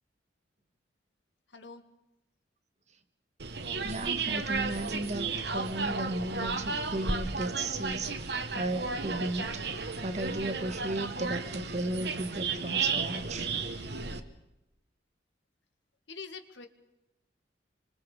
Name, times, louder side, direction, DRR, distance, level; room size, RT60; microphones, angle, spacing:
voice 1, 1.5-1.8 16.1-16.7, left 5 dB, 75° left, 7 dB, 2.1 m, -44 dB
sound 1, 3.4-14.2, right 4 dB, 60° right, 1.5 m, -33 dB
voice 2, 3.8-9.6 10.0-13.5, right 2 dB, 40° right, 9 dB, 1.5 m, -35 dB
26.5 x 25.5 x 5.2 m, 0.91 s
head